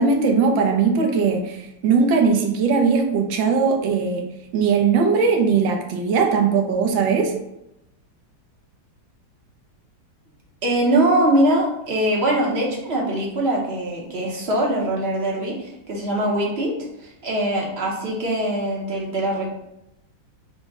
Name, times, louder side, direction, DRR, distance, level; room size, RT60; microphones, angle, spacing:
voice 1, 0.0-4.3 4.5-7.4, right 5 dB, 85° right, 3 dB, 1.4 m, -19 dB
voice 2, 10.6-16.7 17.0-19.5, right 1 dB, 45° right, -3 dB, 0.8 m, -22 dB
6.2 x 2.1 x 3.5 m, 0.85 s
omnidirectional pair, 2.0 m